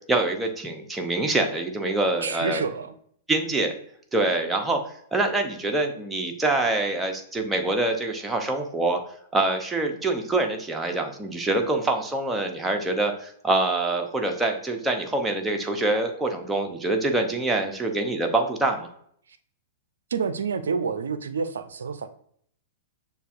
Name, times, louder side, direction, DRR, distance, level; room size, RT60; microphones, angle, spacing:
voice 1, 0.1-2.6 3.3-3.7 4.1-4.8 5.1-9.0 9.3-18.9, right 2 dB, 10° right, 3 dB, 0.7 m, -25 dB
voice 2, 2.2-3.0 20.1-22.1, right 5 dB, 75° right, 11 dB, 0.4 m, -28 dB
6.6 x 2.3 x 2.5 m, 0.63 s
figure-of-eight pair, 105°, 0 cm